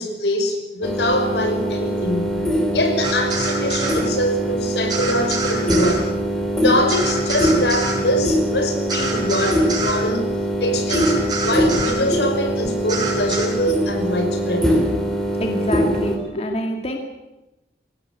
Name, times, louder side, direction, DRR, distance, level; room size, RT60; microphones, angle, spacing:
voice 1, 0.0-6.1 6.5-10.3 10.6-14.8, left 1 dB, 85° left, 5 dB, 5.5 m, -24 dB
sound 1, 0.8-16.2, equal, 5° left, 3.8 m, -22 dB
sound 2, 3.0-4.0 4.9-6.0 6.9-8.0 8.9-10.0 10.9-12.0 12.9-13.5, right 3 dB, 25° right, 7.0 m, -26 dB
voice 2, 15.4-17.0, equal, 35° left, 3 dB, 2.3 m, -26 dB
23.5 x 18.0 x 8.6 m, 0.99 s
head